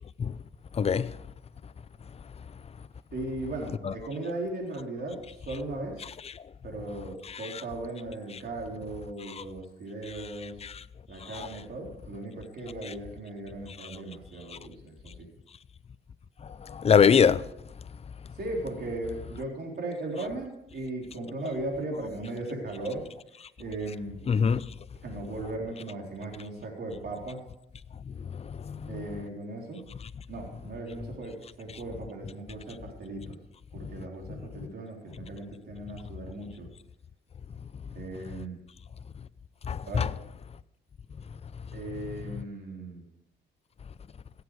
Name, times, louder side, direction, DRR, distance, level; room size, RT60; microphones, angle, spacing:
voice 1, 0.8-1.1 3.8-3.9 10.6-10.7 16.7-17.4 24.3-24.6 28.7-28.8 39.7-40.1, left 7 dB, 30° left, 0.5 m, -22 dB
voice 2, 3.1-6.0 6.6-10.6 11.1-15.3 18.3-23.1 23.6-24.2 25.0-27.4 28.9-29.8 30.3-33.4 33.7-36.7 37.9-38.6 39.8-40.1 41.7-43.1, right 2 dB, 55° right, 4.0 m, -37 dB
16.5 x 8.1 x 4.9 m
cardioid pair, 90°, 20 cm